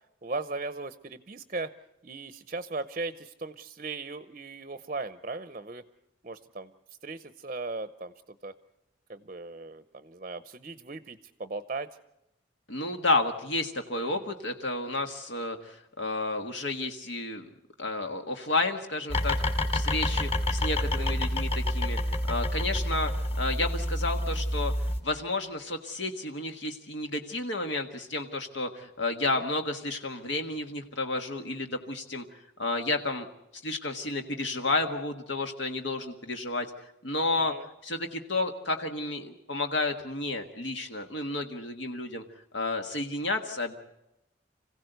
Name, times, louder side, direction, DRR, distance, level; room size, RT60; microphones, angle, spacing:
voice 1, 0.2-1.7 2.0-5.8 6.2-6.7 7.0-8.5 9.1-12.0 13.9-14.3 20.8-21.1 29.3-29.4 37.5-37.6, right 3 dB, 40° right, 12 dB, 0.7 m, -38 dB
voice 2, 12.7-17.5 17.8-32.2 32.6-33.3 33.6-36.7 37.0-37.5 37.8-42.2 42.5-43.7, left 2 dB, 70° left, 5 dB, 1.5 m, -31 dB
sound 1, 19.1-25.0, left 1 dB, 30° left, 2.3 m, -28 dB
26.5 x 16.0 x 8.0 m, 0.91 s
head